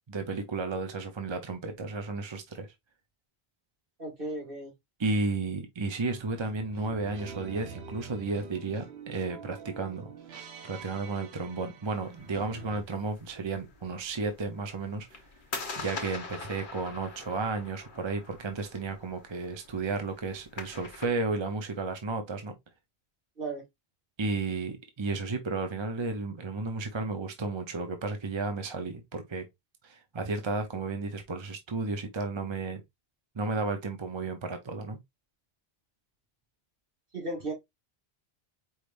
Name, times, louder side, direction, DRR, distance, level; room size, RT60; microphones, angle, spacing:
voice 1, 0.1-2.7 5.0-10.1 10.6-15.2 15.8-22.5 24.2-29.4 29.8-32.8 33.3-35.0, right 3 dB, 30° right, 0.7 m, -33 dB
voice 2, 4.0-4.7 23.4-23.6 37.1-37.5, right 2 dB, 60° right, 1.9 m, -35 dB
sound 1, 6.1-12.8, right 6 dB, 80° right, 1.1 m, -46 dB
sound 2, 11.8-21.1, left 4 dB, 55° left, 1.1 m, -44 dB
4.7 x 3.3 x 2.5 m
omnidirectional pair, 1.1 m